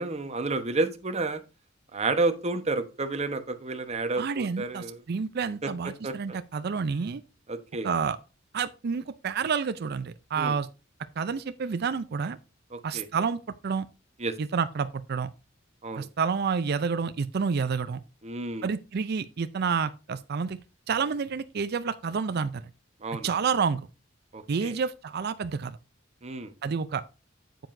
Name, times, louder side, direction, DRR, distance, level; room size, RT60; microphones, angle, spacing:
voice 1, 0.0-1.4 1.9-5.0 5.6-5.7 6.0-6.4 7.5-7.9 10.4-10.6 12.7-13.1 14.2-14.3 15.8-16.1 18.2-18.7 23.0-23.3 24.3-24.7 26.2-26.5, right 3 dB, 35° right, 1.0 m, -30 dB
voice 2, 4.1-7.2 7.8-8.2 8.5-10.7 11.2-12.4 12.8-13.9 14.4-15.3 16.0-18.0 18.6-20.6 20.9-22.7 23.2-23.9 24.5-25.8 26.6-27.0, right 5 dB, 55° right, 0.4 m, -29 dB
9.1 x 7.7 x 2.6 m
head